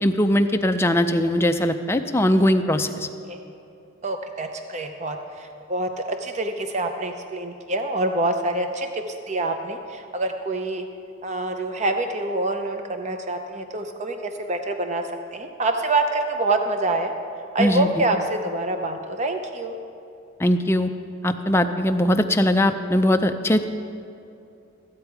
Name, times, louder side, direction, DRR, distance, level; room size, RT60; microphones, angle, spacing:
voice 1, 0.0-3.1 17.6-18.0 20.4-20.9 21.2-23.6, left 1 dB, 10° left, 6 dB, 0.4 m, -20 dB
voice 2, 4.0-10.9 11.2-15.0 15.3-17.1 17.5-19.8, right 2 dB, 35° right, 5 dB, 0.6 m, -26 dB
14.0 x 8.8 x 4.6 m, 2.6 s
head